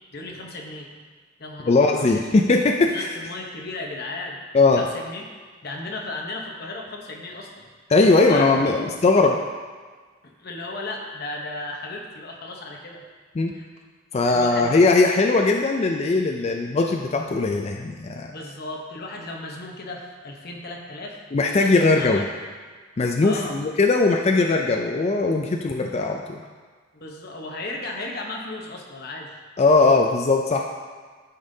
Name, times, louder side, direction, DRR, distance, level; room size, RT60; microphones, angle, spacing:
voice 1, 0.1-0.9 1.4-2.2 2.8-4.4 4.8-5.2 5.6-7.6 8.3-9.0 10.2-13.0 13.5-13.7 14.2-14.9 18.3-21.2 21.6-22.5 23.2-23.6 26.9-29.3, left 2 dB, 50° left, 0 dB, 0.9 m, -35 dB
voice 2, 1.7-3.1 4.5-4.8 7.9-9.4 13.4-13.5 14.1-18.3 21.3-22.3 23.0-26.4 29.6-30.7, left 3 dB, 30° left, 2 dB, 0.3 m, -19 dB
12.0 x 5.2 x 2.7 m, 1.5 s
head